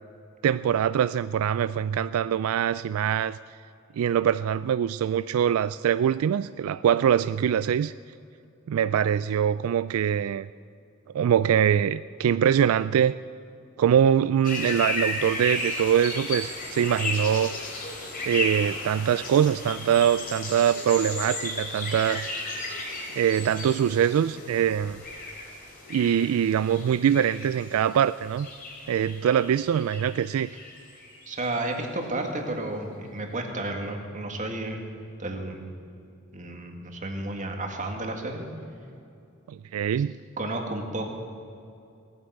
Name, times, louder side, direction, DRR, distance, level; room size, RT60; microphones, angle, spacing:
voice 1, 0.4-3.4 4.0-7.9 8.7-10.5 11.1-13.2 13.8-17.6 18.2-22.3 23.2-25.0 25.9-28.5 28.9-30.5 39.5-40.2, right 9 dB, 85° right, 15 dB, 0.3 m, -23 dB
sound 1, 14.4-31.4, left 2 dB, 45° left, 3.1 m, -34 dB
voice 2, 31.3-34.8 35.2-35.7 36.3-38.5 40.4-41.1, right 2 dB, 35° right, 3 dB, 1.9 m, -32 dB
17.5 x 9.7 x 7.9 m, 2.6 s
head